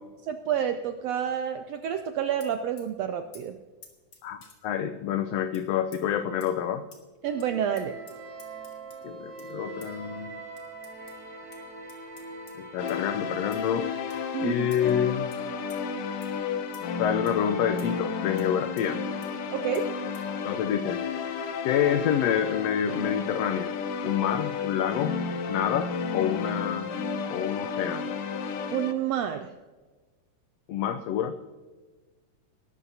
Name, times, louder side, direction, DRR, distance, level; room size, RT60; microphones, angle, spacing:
voice 1, 0.2-3.6 7.2-8.0 14.3-14.7 19.5-19.9 28.7-29.5, right 9 dB, 80° right, 7 dB, 1.4 m, -29 dB
sound 1, 2.4-2.9 3.3-3.4 3.8-4.6 5.5-5.6 5.9-6.0 6.4-6.5 6.9-7.0 7.4-7.5 7.8-9.0 9.4-9.5 9.8-9.9 10.6-11.2 11.5-11.6 11.9-12.5 12.9-13.0 13.5-13.7 14.1-14.2 14.7-14.9 15.3-15.4 15.7-15.8 16.2-16.3 16.7-16.9 17.3-17.4 17.8-17.9 18.4-18.5 18.8-18.9 19.2-19.3 19.7-19.8 20.1-20.3, left 5 dB, 40° left, 2.3 m, -52 dB
voice 2, 4.2-6.8 9.0-10.4 12.5-13.9 14.4-15.3 17.0-19.0 20.4-21.0 21.6-23.7 24.0-25.2 25.5-26.9 27.3-28.1 30.7-31.4, left 9 dB, 90° left, 9 dB, 1.4 m, -28 dB
sound 2, 7.2-13.1, right 3 dB, 50° right, 4.5 m, -42 dB
sound 3, 12.8-28.9, left 5 dB, 65° left, 1.5 m, -32 dB
20.0 x 12.5 x 2.8 m, 1.3 s
omnidirectional pair, 3.6 m